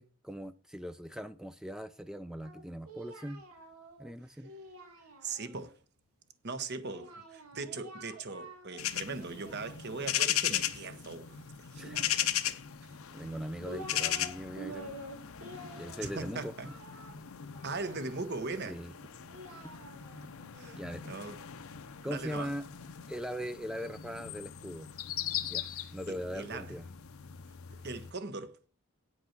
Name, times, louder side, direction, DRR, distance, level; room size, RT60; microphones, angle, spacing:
voice 1, 0.0-3.4 4.0-4.5 11.8-12.1 13.1-15.0 15.6-16.7 18.7-19.0 20.7-21.0 22.0-22.7 23.1-24.9 25.5-26.9, equal, 5° right, 0.4 m, -40 dB
Singing, 2.4-5.7 6.8-8.9 9.2-10.4 11.8-12.7 13.3-14.3 14.6-18.2 19.0-21.2, right 1 dB, 85° right, 2.0 m, -48 dB
voice 2, 5.2-5.8 6.4-12.6 16.0-16.7 17.6-18.8 20.5-21.4 22.0-22.5 26.1-26.7 27.8-28.6, right 3 dB, 50° right, 1.0 m, -40 dB
sound 1, 8.8-28.1, left 11 dB, 75° left, 0.7 m, -38 dB
9.2 x 6.0 x 5.8 m
head